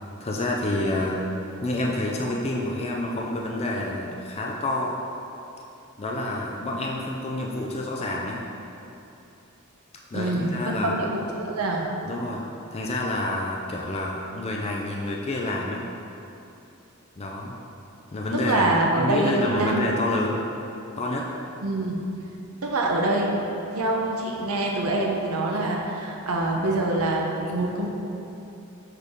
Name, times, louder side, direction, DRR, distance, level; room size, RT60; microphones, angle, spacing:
voice 1, 0.2-1.2 1.6-4.9 6.0-8.4 10.1-10.9 12.0-12.4 12.7-15.9 17.2-17.6 18.1-20.4 21.0-21.3 27.4-27.6, left 1 dB, 30° left, -2 dB, 0.4 m, -28 dB
voice 2, 10.1-11.8 18.4-19.9 21.6-22.0 22.6-23.3 23.8-27.9, right 2 dB, 90° right, -1 dB, 0.8 m, -25 dB
6.6 x 5.0 x 3.6 m, 2.9 s
head